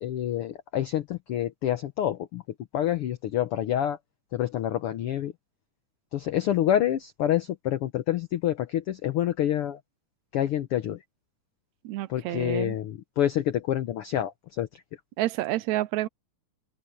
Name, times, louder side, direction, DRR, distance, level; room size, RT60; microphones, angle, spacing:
voice 1, 0.0-2.4 2.7-4.0 4.3-5.3 6.1-9.8 10.3-11.0 12.1-14.7, left 11 dB, 75° left, 1.3 m, -27 dB
voice 2, 11.8-12.8 15.2-16.1, right 16 dB, 80° right, 1.8 m, -29 dB
open air
omnidirectional pair, 3.6 m